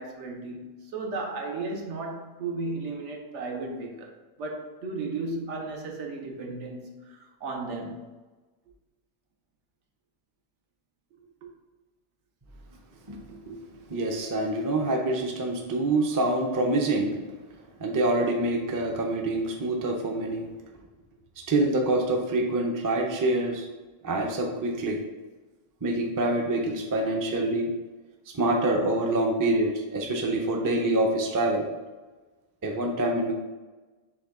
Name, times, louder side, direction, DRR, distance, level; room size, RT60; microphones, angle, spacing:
voice 1, 0.0-4.1 4.4-8.0 11.4-11.5, right 3 dB, 80° right, 1 dB, 1.1 m, -35 dB
voice 2, 13.1-13.6 13.9-17.2 17.8-20.5 21.4-23.7 24.0-25.0 25.8-27.7 28.3-31.7 32.6-33.3, right 2 dB, 30° right, 1 dB, 0.4 m, -26 dB
5.9 x 2.3 x 3.6 m, 1.2 s
omnidirectional pair, 1.2 m